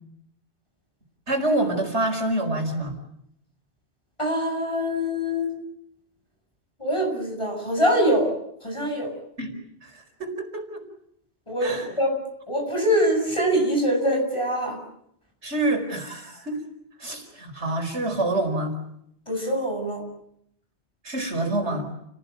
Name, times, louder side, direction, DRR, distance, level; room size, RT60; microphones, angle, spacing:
voice 1, 1.3-3.0 9.4-9.5 9.8-10.8 11.6-11.9 15.4-16.6 17.0-18.7 21.0-21.9, right 2 dB, 80° right, 5 dB, 5.1 m, -27 dB
voice 2, 4.2-5.5 6.8-8.4 8.6-9.1 11.5-12.1 12.5-14.8 19.3-20.0, equal, 25° left, 2 dB, 7.6 m, -24 dB
30.0 x 19.0 x 9.3 m, 0.74 s
omnidirectional pair, 1.1 m